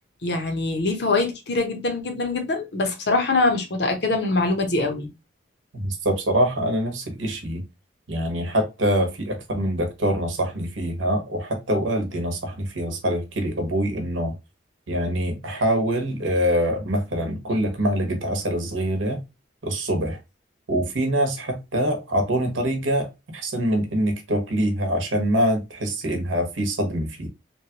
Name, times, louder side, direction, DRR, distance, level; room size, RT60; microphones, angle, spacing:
voice 1, 0.2-5.1, left 3 dB, 55° left, 0.8 m, -23 dB
voice 2, 5.7-7.6 8.1-14.3 14.9-19.2 19.6-20.2 20.7-23.1 23.4-27.3, equal, 80° right, 0.9 m, -24 dB
3.0 x 2.2 x 2.8 m
head